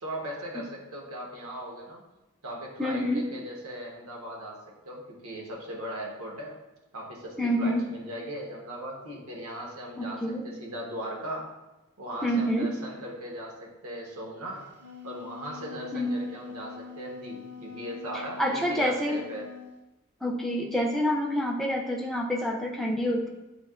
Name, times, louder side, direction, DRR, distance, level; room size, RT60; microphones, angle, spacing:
voice 1, 0.0-2.0 2.4-6.5 6.9-11.5 12.0-14.7 15.0-19.5, equal, 80° right, -1 dB, 0.9 m, -38 dB
voice 2, 2.8-3.3 7.4-7.9 10.0-10.4 12.2-12.7 15.9-16.2 18.4-19.2 20.2-23.3, equal, ahead, -1 dB, 0.3 m, -27 dB
Wind instrument woodwind instrument, 14.6-19.7, left 5 dB, 50° right, 0.5 m, -45 dB
7.9 x 2.7 x 2.4 m, 1.0 s
head